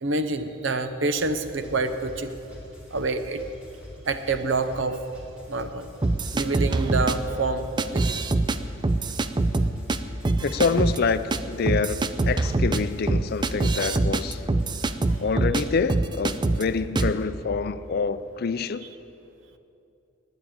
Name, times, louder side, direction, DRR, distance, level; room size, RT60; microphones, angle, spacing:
voice 1, 0.0-2.3 2.9-3.4 4.1-5.0 5.5-5.9 6.3-7.6 7.9-8.2, right 3 dB, 65° right, 9 dB, 0.8 m, -27 dB
sound 1, 1.2-15.2, left 1 dB, 5° right, 3.4 m, -45 dB
sound 2, 6.0-7.1 7.8-8.6 8.8-10.0 10.2-11.0 11.3-11.4 11.7-15.6 15.9-16.6 17.0-17.2, right 2 dB, 25° right, 0.4 m, -24 dB
voice 2, 10.4-11.2 11.5-14.4 15.2-18.9, left 5 dB, 50° left, 13 dB, 0.4 m, -26 dB
11.0 x 9.8 x 8.8 m, 2.7 s
head